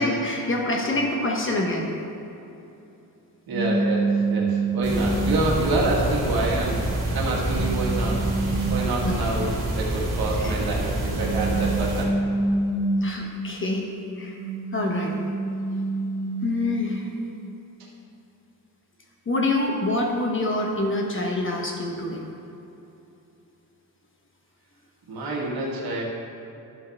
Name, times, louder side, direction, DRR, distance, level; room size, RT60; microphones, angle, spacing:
voice 1, 0.0-1.9 9.0-9.1 10.4-10.5 13.0-13.9 14.2-14.3 14.7-15.1 16.4-17.0 19.3-22.2, left 2 dB, 35° left, 0 dB, 1.1 m, -26 dB
sound 1, 3.5-5.7 6.3-9.5 10.6-13.6 14.0-17.0, right 3 dB, 45° right, 1.5 m, -28 dB
voice 2, 3.5-6.8 7.1-8.2 8.7-12.1 25.1-26.0, right 2 dB, 70° right, -3 dB, 1.8 m, -27 dB
sound 2, 4.8-12.1, right 1 dB, 90° right, 2.2 m, -27 dB
11.5 x 7.2 x 3.5 m, 2.8 s
cardioid pair, 140°, 37 cm